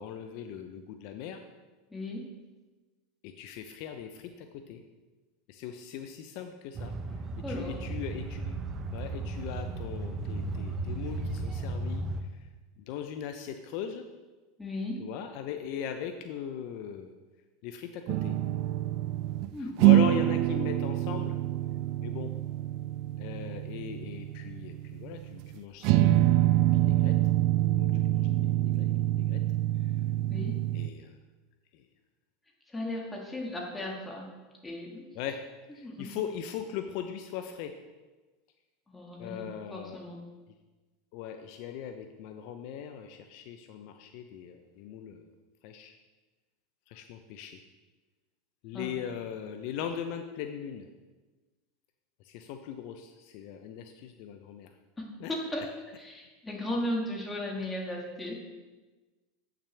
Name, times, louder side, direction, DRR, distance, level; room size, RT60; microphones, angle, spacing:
voice 1, 0.0-1.4 3.2-4.8 5.5-6.9 7.5-8.6 8.9-12.5 12.8-14.0 15.0-17.1 17.6-18.4 19.6-21.4 22.0-22.3 23.2-27.2 27.6-29.4 29.8-29.9 30.7-31.2 31.7-31.8 35.1-37.7 39.2-40.0 41.1-45.2 45.6-45.9 46.9-47.6 48.6-50.9 52.2-54.7 55.2-55.3, left 8 dB, 60° left, 7 dB, 0.5 m, -39 dB
voice 2, 1.9-2.3 7.4-7.8 14.6-15.0 19.5-19.8 30.3-30.6 32.7-34.3 34.6-35.1 35.8-36.1 38.9-40.2 48.7-48.9 55.0-55.7 56.0-58.3, left 1 dB, 15° left, -1 dB, 1.7 m, -36 dB
sound 1, 6.7-12.2, right 2 dB, 35° right, 0.7 m, -35 dB
sound 2, 18.1-19.5 19.8-25.5 25.8-30.9, right 14 dB, 60° right, 0.3 m, -26 dB
8.2 x 5.8 x 3.3 m, 1.3 s
hypercardioid pair, 100°, 0 cm